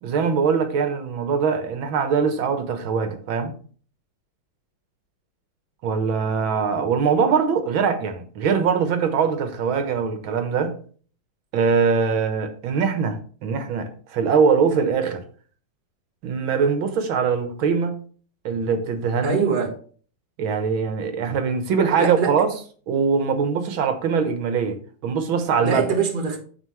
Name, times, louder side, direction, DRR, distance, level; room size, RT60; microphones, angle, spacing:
voice 1, 0.0-3.5 5.8-10.8 11.5-15.2 16.2-18.0 18.5-19.4 20.4-22.5 22.9-25.8, right 6 dB, 90° right, 2.0 m, -22 dB
voice 2, 19.2-19.8 22.0-22.4 25.6-26.4, right 5 dB, 25° right, 1.5 m, -23 dB
9.2 x 7.5 x 3.2 m
omnidirectional pair, 2.1 m